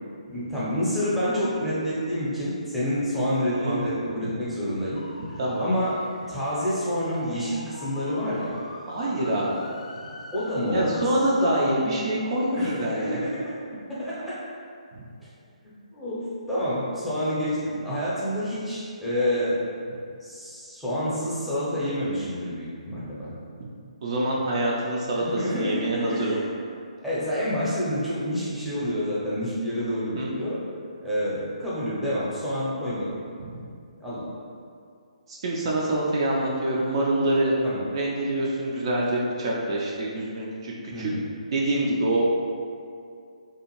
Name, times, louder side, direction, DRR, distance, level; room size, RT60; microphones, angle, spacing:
voice 1, 0.3-5.0 5.3-6.0 6.3-8.6 10.3-11.0 12.5-13.4 13.9-14.4 15.6-19.6 20.2-23.3 25.2-26.5 27.0-30.6 31.0-33.1 34.0-34.3 37.6-37.8 40.9-41.2, equal, ahead, -11 dB, 0.6 m, -28 dB
sound 1, 4.9-11.8, left 2 dB, 65° left, 0.4 m, -43 dB
voice 2, 5.4-5.7 8.9-9.7 10.7-13.2 14.9-15.1 23.6-23.7 24.0-25.2 25.5-26.4 30.1-30.3 33.4-33.6 35.3-37.5 37.9-41.1 41.5-42.3, right 1 dB, 45° right, -4 dB, 0.4 m, -26 dB
2.6 x 2.3 x 2.9 m, 2.4 s
figure-of-eight pair, 145°, 4 cm